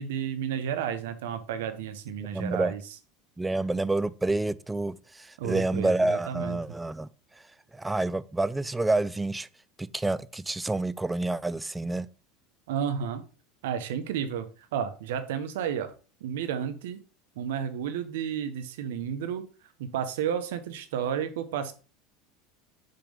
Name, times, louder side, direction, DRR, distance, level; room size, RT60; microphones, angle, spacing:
voice 1, 0.0-2.8 5.4-6.6 12.7-13.2 13.6-14.5 14.7-15.9 16.2-17.0 17.4-19.4 19.8-21.7, right 8 dB, 85° right, 0.9 m, -32 dB
voice 2, 2.2-2.7 3.4-7.1 7.7-9.5 9.8-12.1, right 2 dB, 10° right, 0.3 m, -28 dB
5.8 x 3.4 x 5.1 m
supercardioid pair, 115°, 0 cm